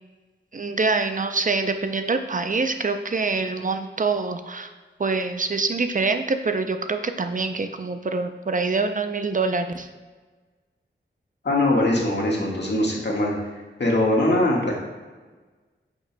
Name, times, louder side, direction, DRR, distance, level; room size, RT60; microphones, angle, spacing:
voice 1, 0.5-4.7 5.0-9.9, right 4 dB, 45° right, 8 dB, 0.5 m, -25 dB
voice 2, 11.4-13.3 13.8-14.8, left 1 dB, 60° left, -2 dB, 1.6 m, -21 dB
8.7 x 5.9 x 2.2 m, 1.3 s
wide cardioid pair, 55°, 20 cm